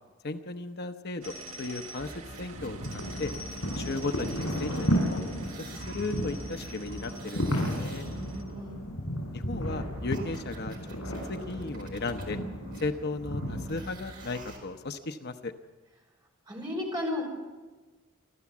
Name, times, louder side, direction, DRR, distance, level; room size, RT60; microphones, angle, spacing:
voice 1, 0.2-3.3 3.7-5.2 5.7-8.1 9.3-10.8 11.3-12.4 12.8-15.5, left 3 dB, 50° left, 8 dB, 0.8 m, -35 dB
sound 1, 1.2-8.4, right 1 dB, 85° right, 1.8 m, -46 dB
sound 2, 2.0-5.0 5.2-8.5 9.8-14.6 15.3-15.4, right 1 dB, 45° right, 4.5 m, -44 dB
sound 3, 2.5-13.9, equal, 80° left, 7.7 m, -34 dB
voice 2, 8.1-8.8 16.5-17.2, left 2 dB, 20° right, 0 dB, 5.3 m, -34 dB
28.0 x 13.0 x 7.3 m, 1.3 s
head